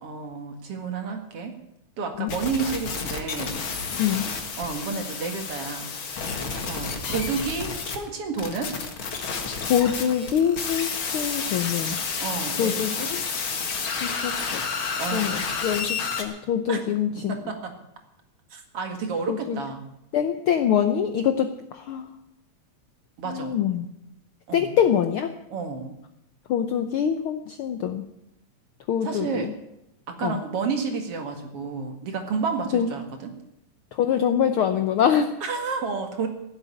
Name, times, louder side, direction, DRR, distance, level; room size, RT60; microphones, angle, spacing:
voice 1, 0.0-1.5 2.0-3.6 4.6-5.9 6.3-8.8 12.2-13.1 15.0-15.5 16.7-16.8 17.2-17.7 18.5-19.8 23.2-23.6 24.5-24.8 25.5-25.9 29.0-29.5 30.1-33.3 35.4-36.3, right 5 dB, 55° right, 5 dB, 2.7 m, -31 dB
sound 1, 2.3-8.0 8.4-16.2, left 5 dB, 50° left, 2.3 m, -30 dB
voice 2, 9.6-12.0 12.6-12.9 14.0-14.6 15.1-17.3 19.3-19.6 20.1-21.5 21.9-22.1 23.3-23.9 24.5-25.3 26.5-28.0 28.9-29.3 30.2-30.4 32.7-32.9 34.0-35.3, left 8 dB, 70° left, 8 dB, 1.3 m, -24 dB
16.5 x 7.9 x 9.8 m, 0.84 s
omnidirectional pair, 3.3 m